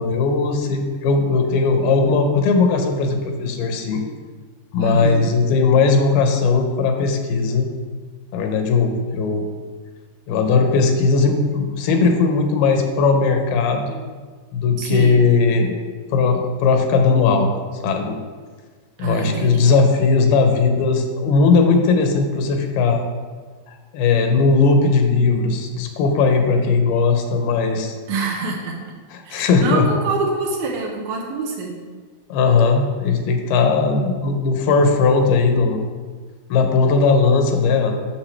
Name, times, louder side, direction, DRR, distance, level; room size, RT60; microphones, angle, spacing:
voice 1, 0.0-4.0 4.7-7.7 8.3-9.5 10.3-14.0 14.5-15.8 16.1-18.2 19.0-23.0 23.9-28.0 29.1-29.9 32.3-35.8 36.5-38.0, left 4 dB, 80° left, 5 dB, 2.5 m, -18 dB
voice 2, 4.8-5.3 14.8-15.2 19.0-19.7 28.1-29.0 29.3-31.8, right 3 dB, 75° right, 0 dB, 2.3 m, -25 dB
8.8 x 6.5 x 3.3 m, 1.5 s
omnidirectional pair, 4.5 m